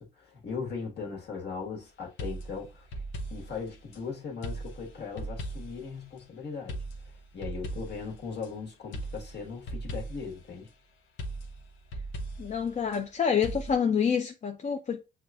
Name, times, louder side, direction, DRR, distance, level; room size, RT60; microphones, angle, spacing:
voice 1, 0.0-3.0 3.3-6.8 7.3-10.7, left 5 dB, 55° left, 1.4 m, -38 dB
sound 1, 2.2-4.0 4.4-5.9 6.7-8.5 8.9-10.4 11.2-13.0 13.4-13.7, right 1 dB, 75° left, 0.7 m, -38 dB
voice 2, 12.4-15.0, left 7 dB, 35° left, 0.5 m, -27 dB
6.3 x 2.3 x 2.3 m
cardioid pair, 90°, 20 cm